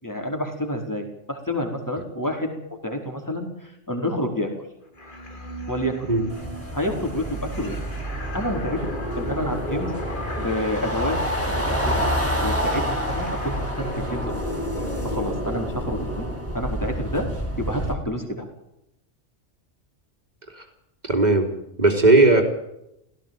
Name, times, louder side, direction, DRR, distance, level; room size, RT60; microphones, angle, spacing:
voice 1, 0.0-2.5 2.8-4.5 5.7-6.1 6.7-7.8 8.3-8.8 9.2-9.9 10.4-11.2 11.8-12.1 12.4-14.4 15.0-16.2 16.5-17.3 17.6-18.4, left 1 dB, 15° left, 2 dB, 4.8 m, -28 dB
sound 1, 5.0-16.7, left 1 dB, 45° left, 2.6 m, -35 dB
sound 2, 6.3-17.9, equal, 10° right, 4.0 m, -28 dB
voice 2, 21.0-21.5 21.8-22.4, right 2 dB, 35° right, 4 dB, 4.0 m, -17 dB
17.5 x 16.5 x 9.2 m, 0.81 s
omnidirectional pair, 1.2 m